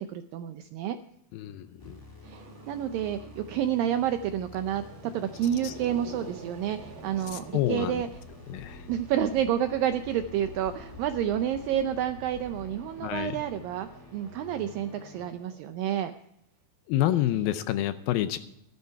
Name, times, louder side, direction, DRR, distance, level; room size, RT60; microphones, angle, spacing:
voice 1, 0.1-1.0 2.3-8.1 8.9-16.1, right 10 dB, 90° right, 8 dB, 2.0 m, -29 dB
voice 2, 1.3-2.0 5.6-5.7 7.3-8.0 8.5-8.8 13.0-13.4 16.9-18.4, left 13 dB, 80° left, 11 dB, 2.1 m, -28 dB
sound 1, 1.8-15.3, left 2 dB, 35° left, 0.3 m, -51 dB
Growling, 2.2-4.0 4.5-8.7 9.7-16.2, right 4 dB, 55° right, 3.9 m, -49 dB
sound 2, 5.6-14.5, left 2 dB, 55° left, 2.4 m, -50 dB
14.5 x 12.5 x 4.6 m, 0.80 s
omnidirectional pair, 4.9 m